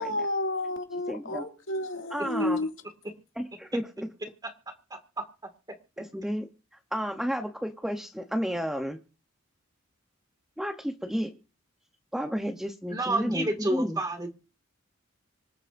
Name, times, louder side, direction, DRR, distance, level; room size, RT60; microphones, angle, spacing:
voice 1, 0.0-2.7, left 1 dB, 70° left, 2.3 m, -30 dB
voice 2, 0.9-1.5 2.1-2.6 3.4-4.1 6.0-6.5 6.9-9.0 10.6-11.4 12.1-14.0, equal, ahead, 0.8 m, -32 dB
voice 3, 12.9-14.3, right 2 dB, 20° right, 2.0 m, -28 dB
26.0 x 8.8 x 2.6 m
head